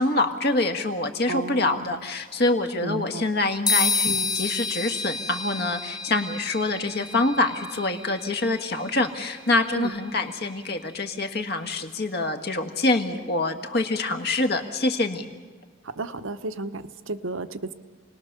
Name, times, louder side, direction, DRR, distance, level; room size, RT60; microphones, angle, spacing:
voice 1, 0.0-15.3, left 2 dB, 50° left, 6 dB, 1.6 m, -25 dB
voice 2, 1.3-2.1 2.8-3.3 9.7-10.0 15.8-17.7, right 3 dB, 80° right, 12 dB, 0.9 m, -33 dB
sound 1, 3.7-11.3, left 4 dB, 20° left, 1.5 m, -31 dB
28.5 x 19.5 x 6.7 m, 1.5 s
head